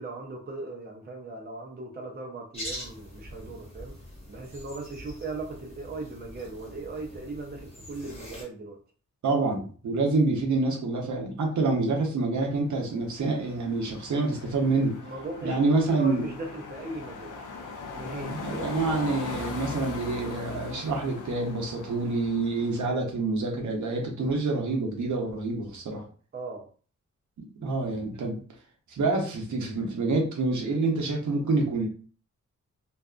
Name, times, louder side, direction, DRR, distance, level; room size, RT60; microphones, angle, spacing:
voice 1, 0.0-3.9 4.3-8.8 11.6-11.9 15.0-17.5 17.9-18.4 26.3-26.7, right 2 dB, 35° right, 1 dB, 0.5 m, -38 dB
sound 1, 2.5-8.4, equal, 20° left, 1.1 m, -43 dB
voice 2, 9.2-14.9 15.4-16.3 18.2-26.0 27.6-28.4 28.9-31.9, right 3 dB, 70° right, 1 dB, 0.8 m, -27 dB
sound 2, 12.5-22.8, left 4 dB, 85° left, 0.6 m, -40 dB
2.6 x 2.4 x 2.3 m, 0.41 s
wide cardioid pair, 100°, 30 cm